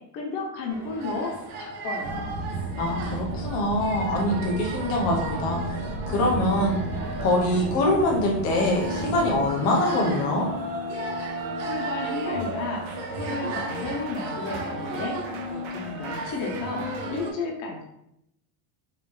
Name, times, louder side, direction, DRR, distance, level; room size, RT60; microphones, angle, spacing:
voice 1, 0.1-1.3 1.6-2.3 11.6-12.8 13.1-15.2 15.5-16.8 17.1-17.8, left 3 dB, 75° left, -1 dB, 1.2 m, -32 dB
sound 1, 0.7-17.3, right 1 dB, 40° right, 0.5 m, -33 dB
sound 2, 2.0-9.5, right 2 dB, 65° right, 0.8 m, -34 dB
voice 2, 2.8-5.6 6.1-6.8 7.2-10.5, left 1 dB, 30° left, -1 dB, 0.5 m, -24 dB
3.5 x 2.7 x 3.2 m, 0.79 s
supercardioid pair, 175°, 50 cm